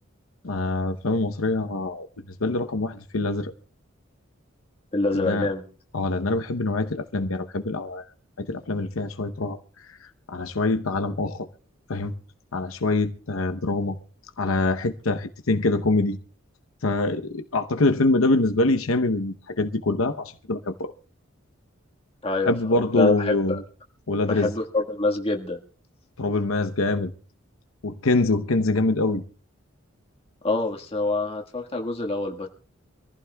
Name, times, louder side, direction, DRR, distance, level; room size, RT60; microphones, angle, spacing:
voice 1, 0.4-2.1 2.4-3.5 5.1-5.5 5.9-8.0 8.4-9.6 10.3-11.5 11.9-12.1 12.5-14.0 14.4-16.2 16.8-20.9 22.5-23.6 24.1-24.5 26.2-27.1 27.8-29.2, left 2 dB, 85° left, 0.9 m, -24 dB
voice 2, 4.9-5.6 22.2-23.6 24.3-25.6 30.4-32.5, left 2 dB, 30° left, 1.6 m, -26 dB
25.5 x 15.0 x 2.3 m
head